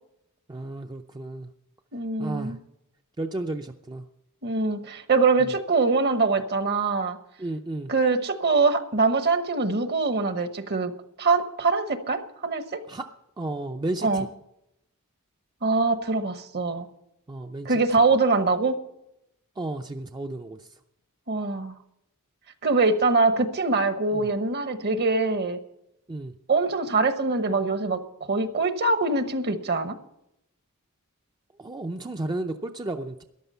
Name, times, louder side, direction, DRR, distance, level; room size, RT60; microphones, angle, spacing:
voice 1, 0.5-1.5 2.2-2.6 3.2-4.1 5.4-5.5 7.4-7.9 12.9-13.1 13.4-14.3 17.3-17.8 19.6-20.7 24.1-24.3 26.1-26.3 31.6-33.2, right 2 dB, 20° right, 5 dB, 0.5 m, -33 dB
voice 2, 1.9-2.6 4.4-7.2 7.9-10.9 11.2-12.8 14.0-14.3 15.6-16.9 17.6-18.8 21.3-21.7 22.6-25.6 26.5-30.0, right 3 dB, 50° right, 10 dB, 1.1 m, -23 dB
13.5 x 11.0 x 5.5 m, 0.83 s
head